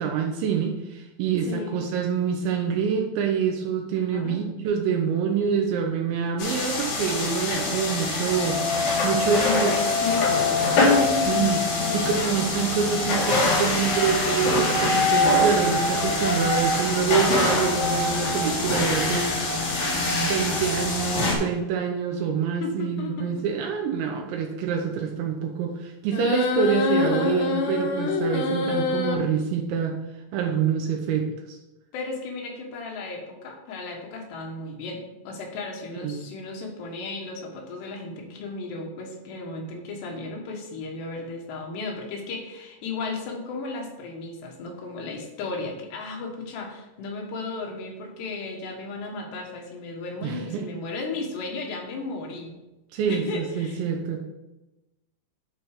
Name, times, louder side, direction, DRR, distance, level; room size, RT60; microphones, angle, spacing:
voice 1, 0.0-9.7 10.3-10.9 11.3-11.6 11.9-30.0 30.3-31.6 36.0-36.2 50.2-50.7 52.9-54.2, right 7 dB, 80° right, 3 dB, 3.0 m, -26 dB
voice 2, 1.5-1.8 4.0-4.4 9.4-12.2 22.6-23.4 31.9-52.5 53.1-53.8, left 3 dB, 70° left, 0 dB, 3.3 m, -34 dB
sound 1, 6.4-21.4, left 2 dB, 50° left, 2.3 m, -24 dB
sound 2, 26.1-29.1, left 3 dB, 90° left, 1.9 m, -25 dB
10.5 x 4.6 x 4.8 m, 1.0 s
omnidirectional pair, 5.4 m